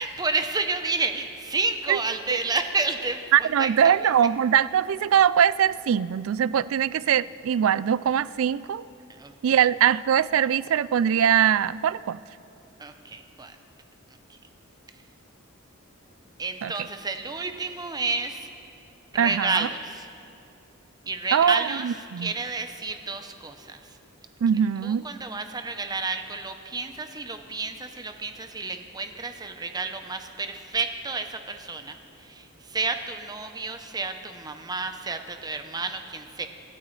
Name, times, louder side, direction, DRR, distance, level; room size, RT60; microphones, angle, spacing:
voice 1, 0.0-4.1 9.2-9.7 12.8-13.6 14.3-14.4 16.4-18.5 19.1-20.1 21.0-21.9 22.2-23.9 24.8-36.5, right 3 dB, 20° right, 7 dB, 0.7 m, -30 dB
voice 2, 3.3-8.8 9.4-12.2 16.6-16.7 19.2-19.7 21.3-22.3 24.4-25.1, right 9 dB, 70° right, 18 dB, 0.3 m, -22 dB
26.0 x 12.0 x 3.2 m, 2.6 s
head